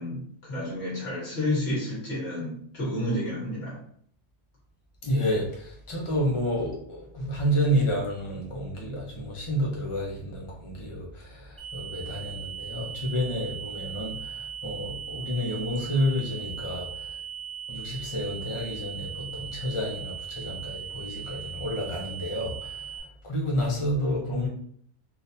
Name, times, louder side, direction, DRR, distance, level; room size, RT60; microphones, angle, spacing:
voice 1, 0.0-3.8, left 1 dB, 80° left, -6 dB, 1.8 m, -30 dB
voice 2, 5.0-17.2 17.7-24.5, equal, 30° left, -2 dB, 0.7 m, -30 dB
sound 1, 11.6-23.0, right 8 dB, 25° right, 0.8 m, -39 dB
3.8 x 2.5 x 2.7 m, 0.63 s
omnidirectional pair, 1.2 m